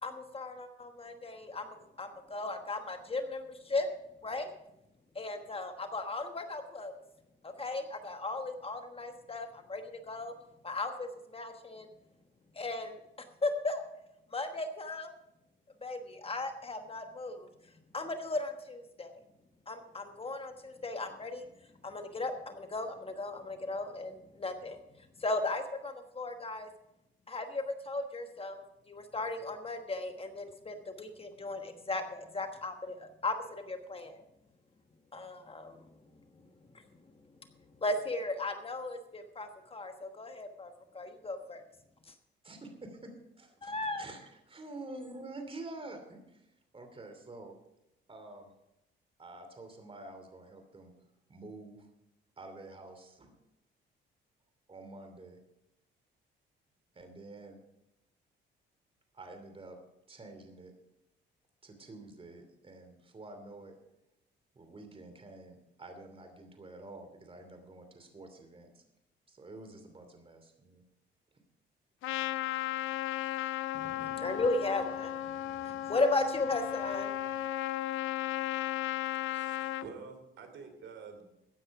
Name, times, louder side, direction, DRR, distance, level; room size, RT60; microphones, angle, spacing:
voice 1, 0.0-3.9 4.2-4.5 5.1-6.9 7.4-10.3 10.6-11.9 12.5-13.0 13.4-13.8 14.3-15.1 15.8-17.5 17.9-19.1 19.7-21.5 21.8-26.7 27.3-34.2 35.1-35.8 37.8-41.6 43.6-44.0 73.7-77.1, left 2 dB, 30° left, 6 dB, 1.3 m, -36 dB
voice 2, 42.4-43.1 43.4-46.5 46.7-47.5 48.1-48.5 49.2-50.9 51.3-51.9 52.4-53.3 54.7-55.4 56.9-57.6 59.1-59.8 60.1-60.7 61.6-63.7 64.5-68.8 69.3-70.8, right 2 dB, 30° right, 6 dB, 2.8 m, -48 dB
Trumpet, 72.0-79.9, left 14 dB, 85° left, 0.5 m, -35 dB
voice 3, 79.1-81.2, right 5 dB, 70° right, 6 dB, 3.0 m, -48 dB
15.5 x 9.8 x 4.8 m, 0.87 s
cardioid pair, 90°, 20 cm